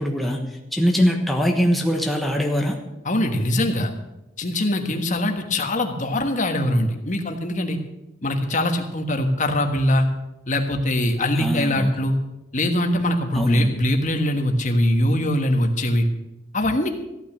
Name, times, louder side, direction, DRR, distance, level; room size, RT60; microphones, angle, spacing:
voice 1, 0.0-2.8 11.4-11.9 13.3-13.7, equal, ahead, 0 dB, 1.2 m, -22 dB
voice 2, 3.0-3.9 4.4-7.8 8.2-10.1 10.5-12.1 12.5-16.1 16.5-16.9, left 1 dB, 40° left, 5 dB, 1.5 m, -22 dB
14.5 x 9.1 x 6.8 m, 0.96 s
head